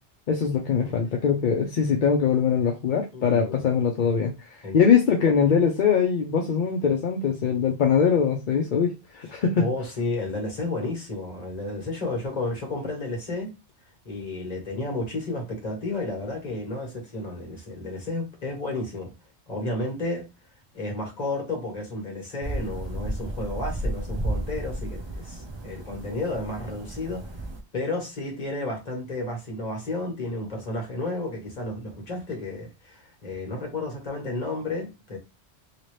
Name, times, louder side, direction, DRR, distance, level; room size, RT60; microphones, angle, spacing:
voice 1, 0.3-4.5 4.7-9.7, left 6 dB, 55° left, 0.6 m, -22 dB
voice 2, 3.1-3.6 4.6-4.8 9.2-13.5 14.0-19.1 19.5-20.3 20.7-27.4 27.7-35.2, left 2 dB, 35° left, 1.4 m, -32 dB
sound 1, 22.4-27.6, right 1 dB, 35° right, 0.4 m, -33 dB
2.9 x 2.8 x 3.1 m
omnidirectional pair, 1.2 m